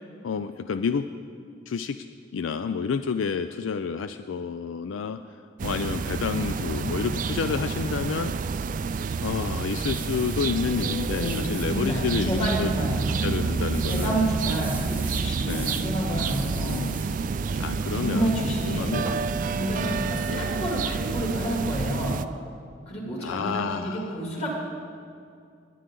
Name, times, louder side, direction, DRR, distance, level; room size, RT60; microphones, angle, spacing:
voice 1, 0.2-1.1 1.7-2.0 2.3-5.2 5.6-8.3 9.2-12.7 13.2-14.3 15.5-15.8 16.6-17.0 17.6-18.4 18.7-19.0 19.8-20.0 20.3-20.5 23.2-24.1, left 6 dB, 75° left, 10 dB, 0.4 m, -29 dB
sound 1, 5.6-22.3, right 5 dB, 40° right, 0.3 m, -29 dB
sound 2, 9.7-11.7 12.3-12.4 12.6-12.7 13.7-15.9 16.2-17.1 19.1-19.3, right 3 dB, 10° right, 1.1 m, -42 dB
voice 2, 11.1-13.1 13.9-16.9 17.9-19.1 19.5-22.2 22.9-24.5, right 1 dB, 35° left, -3 dB, 2.8 m, -29 dB
Bowed string instrument, 16.4-17.3, left 1 dB, 85° right, 0.9 m, -41 dB
21.0 x 9.2 x 3.8 m, 2.4 s
head